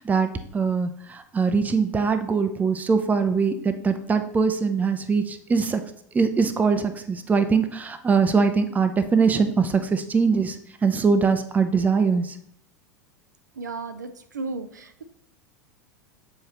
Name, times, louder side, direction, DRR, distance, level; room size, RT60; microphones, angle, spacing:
voice 1, 0.0-5.8 6.1-10.6 10.8-12.4, right 5 dB, 15° right, 9 dB, 0.6 m, -22 dB
voice 2, 13.6-15.0, right 3 dB, 80° right, 9 dB, 0.5 m, -34 dB
7.4 x 4.9 x 2.9 m, 0.71 s
figure-of-eight pair, 80°, 10 cm